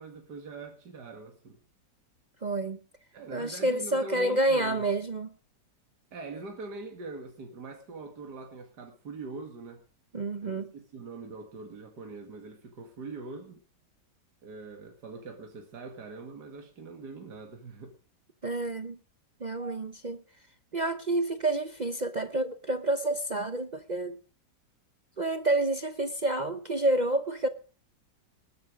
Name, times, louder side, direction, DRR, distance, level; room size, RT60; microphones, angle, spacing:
voice 1, 0.0-1.6 3.1-4.9 6.1-9.8 10.4-13.6 14.4-18.0 19.6-19.8, right 3 dB, 65° right, 2.6 m, -43 dB
voice 2, 2.4-2.8 3.3-5.3 10.1-10.7 18.4-19.0 19.4-20.2 20.7-24.2 25.2-27.5, right 2 dB, 45° right, 0.6 m, -29 dB
20.0 x 10.5 x 5.1 m
omnidirectional pair, 1.9 m